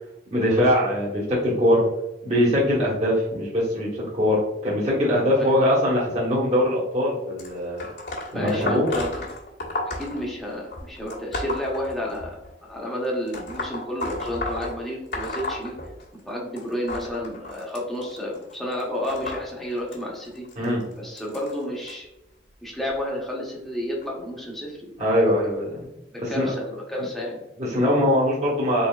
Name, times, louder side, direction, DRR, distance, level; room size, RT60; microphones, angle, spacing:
voice 1, 0.3-1.8 2.2-7.8 8.3-8.9 20.6-20.8 25.0-25.7 26.2-26.5 27.6-28.9, left 1 dB, 35° right, -7 dB, 1.4 m, -22 dB
sound 1, 7.4-12.5 13.3-16.3 16.6-21.9 22.7-23.0 24.0-24.1 25.0-25.1 25.8-25.9, left 2 dB, 65° left, 1.4 m, -33 dB
voice 2, 8.3-9.2 10.0-12.4 12.6-15.7 16.2-20.4 21.0-22.0 22.6-25.5 26.1-27.4, left 1 dB, ahead, -4 dB, 1.0 m, -31 dB
4.3 x 4.0 x 2.4 m, 0.95 s
head